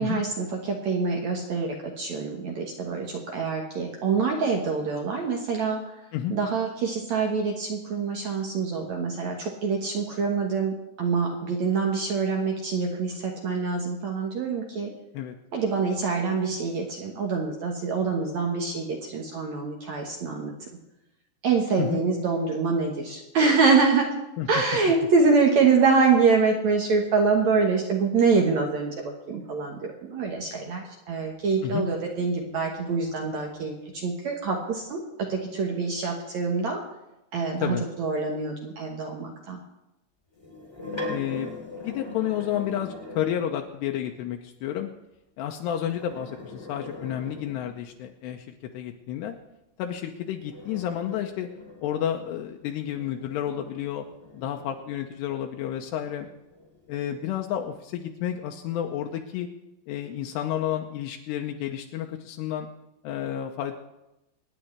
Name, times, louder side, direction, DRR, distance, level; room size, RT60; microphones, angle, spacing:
voice 1, 0.0-5.8 6.3-14.9 15.5-20.5 21.4-24.1 24.5-33.7 34.0-35.0 35.3-36.8 37.3-39.6, right 4 dB, 65° right, 1 dB, 1.8 m, -25 dB
sound 1, 40.3-43.7 45.6-48.0 49.9-55.1 55.7-57.4, left 2 dB, 10° left, 1.2 m, -41 dB
voice 2, 41.1-41.5 41.8-44.9 45.4-49.4 49.8-51.5 51.8-54.1 54.3-56.3 56.9-59.5 59.9-62.7 63.0-63.7, left 10 dB, 85° left, 3 dB, 2.8 m, -31 dB
25.5 x 9.9 x 3.3 m, 0.92 s
omnidirectional pair, 4.9 m